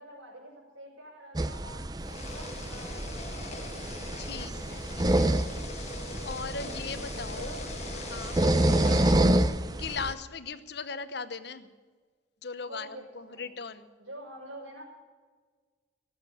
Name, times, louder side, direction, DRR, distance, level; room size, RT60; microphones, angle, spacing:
voice 1, 0.0-4.2 6.5-6.8 7.4-7.7 8.8-9.2 12.7-13.5 14.0-14.8, right 1 dB, 80° right, -8 dB, 6.2 m, -47 dB
sound 1, 1.4-10.1, right 1 dB, 20° right, 0.6 m, -28 dB
sound 2, 2.0-9.2, left 3 dB, 35° left, 1.3 m, -42 dB
voice 2, 4.2-5.3 6.2-7.5 8.1-8.4 9.8-11.7 12.4-13.9, left 5 dB, 55° left, 12 dB, 0.9 m, -38 dB
18.5 x 8.2 x 8.5 m, 1.5 s
head